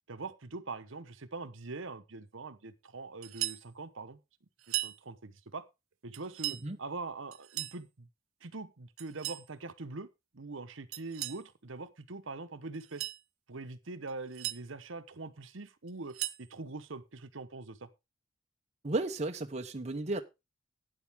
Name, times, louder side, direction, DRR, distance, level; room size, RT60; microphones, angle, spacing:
voice 1, 0.1-4.2 4.8-5.7 6.0-8.1 8.4-10.1 10.3-13.1 13.5-17.9, right 3 dB, 65° right, 1.0 m, -43 dB
sound 1, 3.2-3.7 4.6-5.0 6.1-6.6 7.3-7.8 9.0-9.5 10.9-11.4 12.7-13.2 14.1-14.6 15.9-16.5, right 16 dB, 90° right, 0.8 m, -37 dB
voice 2, 18.8-20.2, right 2 dB, 30° right, 0.8 m, -33 dB
12.0 x 9.6 x 3.5 m
head